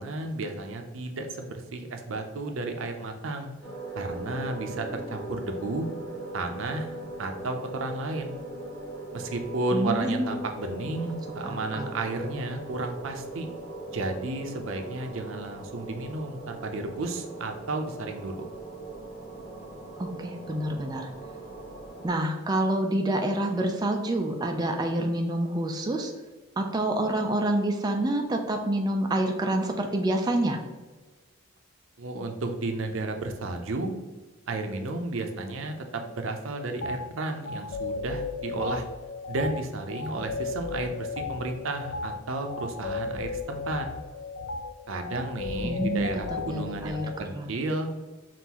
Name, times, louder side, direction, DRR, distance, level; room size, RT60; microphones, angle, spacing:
voice 1, 0.0-3.5 3.9-5.9 6.3-8.4 9.1-13.5 13.9-18.5 32.0-33.9 34.5-38.9 39.3-43.9 44.9-47.9, right 2 dB, 70° right, 5 dB, 0.5 m, -33 dB
sound 1, 3.6-22.1, right 2 dB, 15° left, 1.4 m, -40 dB
voice 2, 9.7-10.3 11.1-11.2 11.4-11.9 20.0-21.1 22.0-26.1 26.6-30.6 45.6-47.5, right 1 dB, 20° right, 3 dB, 0.3 m, -27 dB
sound 2, 36.8-37.0 37.4-47.2, left 4 dB, 65° left, 0.3 m, -35 dB
5.4 x 2.5 x 2.9 m, 1.3 s
head